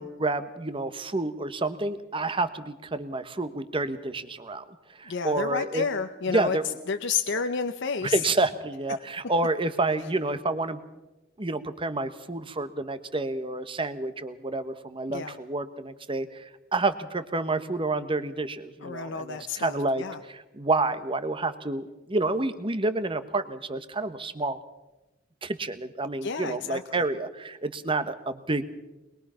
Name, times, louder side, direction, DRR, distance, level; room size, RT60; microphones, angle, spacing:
voice 1, 0.0-4.6 4.9-5.9 6.3-6.6 8.0-10.8 11.4-24.6 25.4-28.6, right 2 dB, 25° right, 11 dB, 1.2 m, -29 dB
voice 2, 5.1-6.6 6.9-8.2 15.1-15.4 18.8-20.2 26.2-27.0, left 5 dB, 60° left, 8 dB, 0.8 m, -30 dB
23.0 x 21.5 x 5.7 m, 1.0 s
head